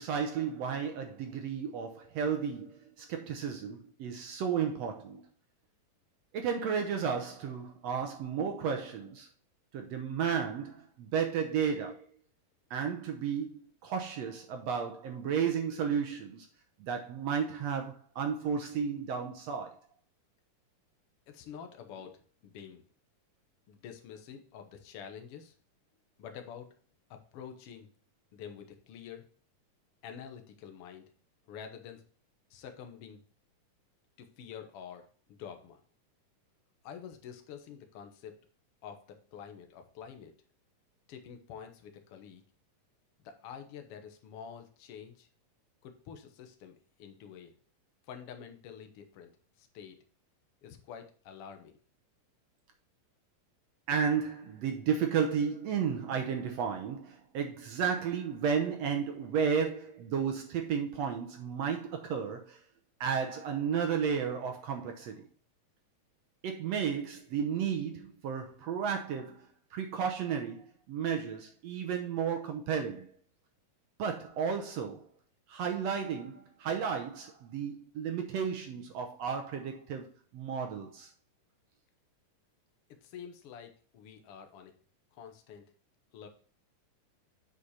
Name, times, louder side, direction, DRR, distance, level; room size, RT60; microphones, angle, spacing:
voice 1, 0.0-5.2 6.3-9.3 9.7-12.1 12.7-13.5 13.8-16.5 16.8-19.8 53.9-62.6 63.0-65.2 66.4-73.1 74.0-75.1 75.5-81.1, right 7 dB, 75° right, 1.5 m, -33 dB
voice 2, 21.3-22.8 23.7-25.5 26.2-26.7 27.1-27.9 28.3-29.3 30.0-31.0 31.5-32.0 32.5-33.2 34.2-35.8 36.8-38.3 38.8-40.3 41.1-42.4 43.2-45.3 45.8-47.5 48.0-49.3 49.6-50.0 50.6-51.8 83.0-84.7 85.1-85.7 86.1-86.3, left 8 dB, 70° left, 1.4 m, -47 dB
8.2 x 5.2 x 4.2 m
omnidirectional pair, 4.0 m